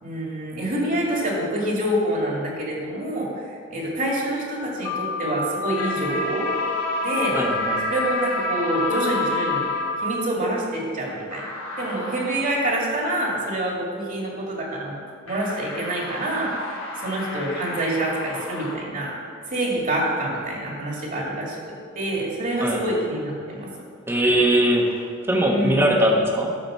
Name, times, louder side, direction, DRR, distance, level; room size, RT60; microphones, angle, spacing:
voice 1, 0.0-6.5 7.0-7.4 7.9-9.7 10.0-11.5 11.8-15.0 15.3-19.1 19.5-23.7 25.5-25.8, right 1 dB, 40° right, -3 dB, 2.3 m, -26 dB
sound 1, 4.8-5.3 5.6-6.1 6.4-6.9 7.1-7.6 7.9-8.4 8.7-9.2 9.5-10.0, left 6 dB, 45° left, 2.3 m, -29 dB
sound 2, 5.8-10.2 11.3-12.6 15.3-18.7, left 3 dB, 85° left, 3.0 m, -31 dB
voice 2, 7.3-7.9 22.6-22.8 24.1-26.6, right 1 dB, 10° right, 0 dB, 1.3 m, -21 dB
12.0 x 5.0 x 6.8 m, 2.1 s
head